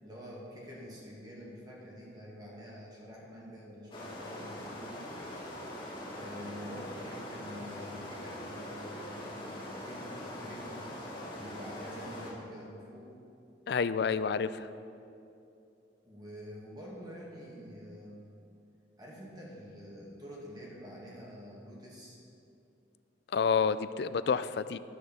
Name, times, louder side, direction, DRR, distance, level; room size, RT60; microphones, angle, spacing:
voice 1, 0.0-5.1 6.2-11.0 11.3-13.1 16.0-18.2 19.0-22.2, equal, 20° right, -4 dB, 2.0 m, -47 dB
sound 1, 3.9-12.3, left 1 dB, 25° left, 2.0 m, -42 dB
voice 2, 13.7-14.7 23.3-24.8, left 6 dB, 60° left, 14 dB, 0.3 m, -29 dB
12.0 x 6.5 x 7.0 m, 2.7 s
head